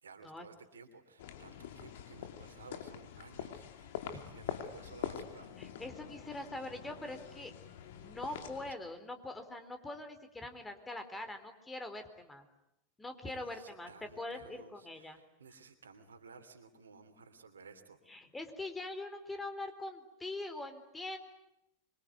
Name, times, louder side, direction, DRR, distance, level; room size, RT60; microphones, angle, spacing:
voice 1, 0.0-3.9 4.3-5.5 13.2-18.0, right 4 dB, 80° right, 8 dB, 3.1 m, -55 dB
sound 1, 1.2-8.7, left 9 dB, 65° left, 2.8 m, -45 dB
voice 2, 5.6-7.5 8.0-12.5 13.0-15.2 18.1-21.2, left 2 dB, 10° left, 8 dB, 3.9 m, -43 dB
26.0 x 23.5 x 9.5 m, 0.88 s
figure-of-eight pair, 90°, 0 cm